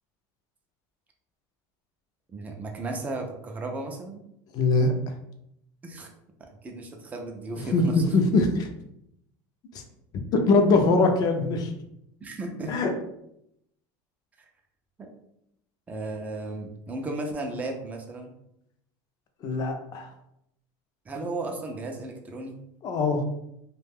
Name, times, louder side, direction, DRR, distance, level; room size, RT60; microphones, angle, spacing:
voice 1, 2.3-4.2 5.8-6.1 6.4-8.2 12.2-12.7 15.0-15.1 15.9-18.3 21.1-22.6, right 2 dB, 15° right, 2 dB, 0.4 m, -35 dB
voice 2, 4.5-5.1 7.6-8.7 9.7-9.8 10.3-11.7 12.7-12.9 19.4-20.1 22.8-23.2, left 3 dB, 40° left, 5 dB, 0.5 m, -22 dB
2.4 x 2.2 x 3.3 m, 0.78 s
supercardioid pair, 140°, 10 cm